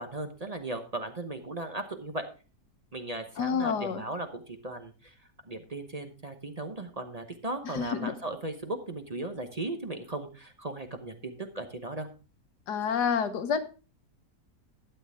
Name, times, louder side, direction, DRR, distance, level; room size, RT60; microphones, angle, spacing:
voice 1, 0.0-2.3 2.9-5.1 5.5-12.1, right 2 dB, 30° right, 7 dB, 0.8 m, -37 dB
voice 2, 3.4-4.0 7.6-8.1 12.7-13.6, left 6 dB, 80° left, 10 dB, 1.6 m, -28 dB
12.5 x 9.3 x 3.5 m, 0.33 s
omnidirectional pair, 1.8 m